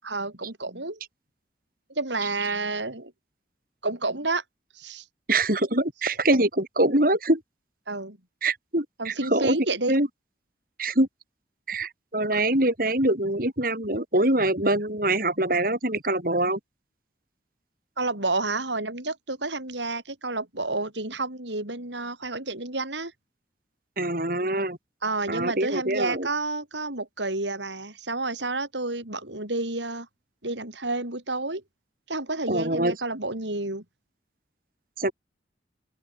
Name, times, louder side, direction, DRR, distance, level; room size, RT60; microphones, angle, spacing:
voice 1, 0.0-1.0 2.0-3.1 3.8-4.4 4.7-5.0 7.9-8.2 9.0-10.0 12.3-12.4 18.0-23.1 25.0-30.1 30.4-31.6 32.1-33.8, right 2 dB, 85° right, 7.7 m, -30 dB
voice 2, 5.3-7.4 8.4-9.6 9.9-10.1 10.8-11.1 11.7-16.6 24.0-24.8 25.3-26.3 32.5-32.9 35.0-35.1, right 1 dB, 50° right, 6.6 m, -24 dB
open air
head